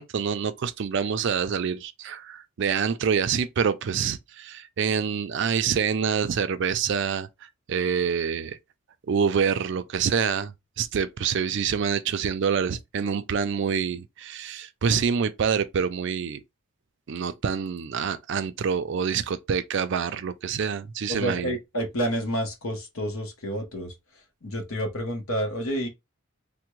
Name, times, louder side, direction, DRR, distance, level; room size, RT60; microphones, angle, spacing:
voice 1, 0.0-7.3 7.7-8.6 9.1-16.4 17.1-21.6, right 6 dB, 55° right, 0.4 m, -26 dB
voice 2, 21.1-23.9 24.4-25.9, equal, 75° left, 0.8 m, -29 dB
3.3 x 2.1 x 3.0 m
head